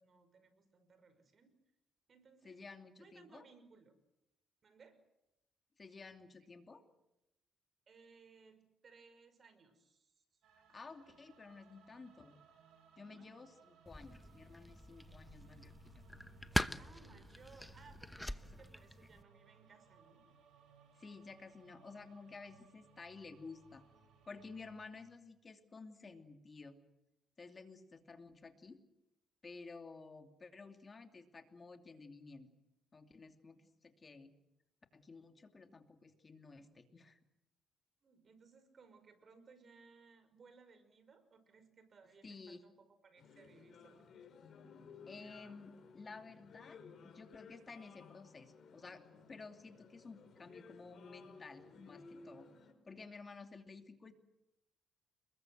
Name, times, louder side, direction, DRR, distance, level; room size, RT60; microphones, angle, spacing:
voice 1, 0.0-1.5 2.1-2.6 3.0-3.9 4.6-5.0 7.9-10.2 13.0-13.3 13.9-14.0 16.8-20.3 38.0-44.1, right 4 dB, 45° right, 11 dB, 5.5 m, -63 dB
voice 2, 2.4-3.4 5.8-6.8 10.7-12.4 13.0-16.0 20.9-23.8 24.3-26.8 27.4-28.8 29.4-32.5 32.9-34.3 34.9-37.2 42.2-42.6 45.1-52.5 52.9-54.1, left 4 dB, 35° left, 6 dB, 2.7 m, -53 dB
sound 1, 10.4-24.9, right 5 dB, 75° right, 7.0 m, -65 dB
sound 2, 13.9-19.2, left 1 dB, 5° left, 1.0 m, -42 dB
sound 3, 43.2-52.7, left 4 dB, 60° left, 5.6 m, -58 dB
30.0 x 21.5 x 7.9 m, 0.87 s
cardioid pair, 90°, 0 cm